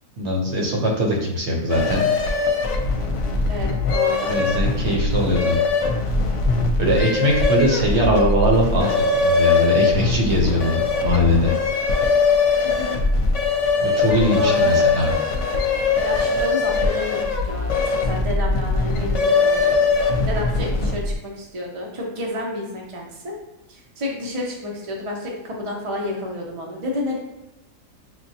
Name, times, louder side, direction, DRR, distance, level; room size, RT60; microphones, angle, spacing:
voice 1, 0.2-2.1 4.3-5.6 6.8-8.9 9.2-11.5 13.8-15.1, equal, 60° right, -1 dB, 1.0 m, -21 dB
sound 1, 1.7-21.1, left 4 dB, 65° left, 0.9 m, -21 dB
voice 2, 3.5-4.6 6.0-6.4 12.6-13.0 14.3-14.9 16.0-19.9 20.3-23.3 23.7-27.2, left 1 dB, 40° right, -2 dB, 0.5 m, -30 dB
6.2 x 2.1 x 2.7 m, 1.0 s
omnidirectional pair, 1.4 m